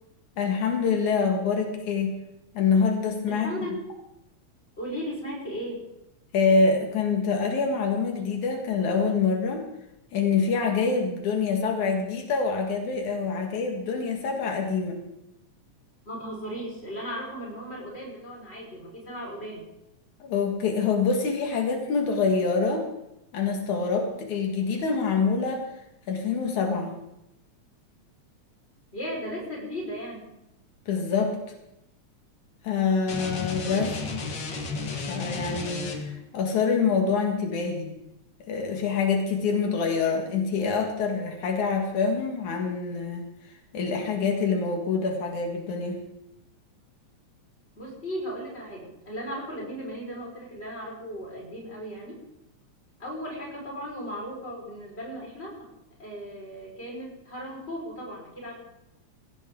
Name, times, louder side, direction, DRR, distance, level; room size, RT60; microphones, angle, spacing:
voice 1, 0.4-2.1 2.5-3.5 6.3-9.7 10.1-15.0 20.2-22.9 23.3-25.7 26.1-26.9 30.9-31.4 32.6-33.9 35.1-37.9 38.5-43.2 43.7-46.0, left 5 dB, 85° left, 2 dB, 3.3 m, -25 dB
voice 2, 3.3-3.8 4.8-5.8 16.1-19.6 28.9-30.3 33.6-34.0 47.8-52.2 53.0-55.7 56.0-58.6, equal, 20° left, -2 dB, 5.3 m, -36 dB
sound 1, 33.1-36.3, left 3 dB, 45° left, 2.1 m, -33 dB
20.5 x 16.5 x 3.9 m, 0.87 s
omnidirectional pair, 3.3 m